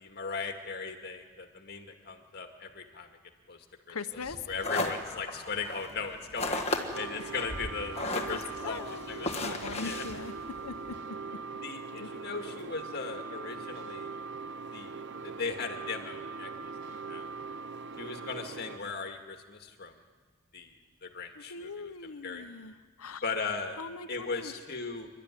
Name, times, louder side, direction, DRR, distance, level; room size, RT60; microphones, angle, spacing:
voice 1, 0.0-3.1 3.5-4.0 4.5-6.6 7.0-8.8 9.1-9.3 9.8-10.0 11.6-14.1 14.7-17.3 17.9-19.9 20.5-20.7 21.0-22.5 23.2-23.8 24.1-25.1, left 4 dB, 45° left, 4 dB, 2.1 m, -38 dB
voice 2, 3.9-4.4 6.7-6.9 8.6-10.3 10.6-11.4 11.9-12.1 21.4-23.2 23.8-24.6, left 4 dB, 75° left, 8 dB, 0.9 m, -41 dB
sound 1, 4.2-11.0, left 2 dB, 30° left, 1.6 m, -36 dB
sound 2, 6.9-18.8, right 4 dB, 50° right, 0.7 m, -41 dB
28.0 x 12.5 x 10.0 m, 1.4 s
head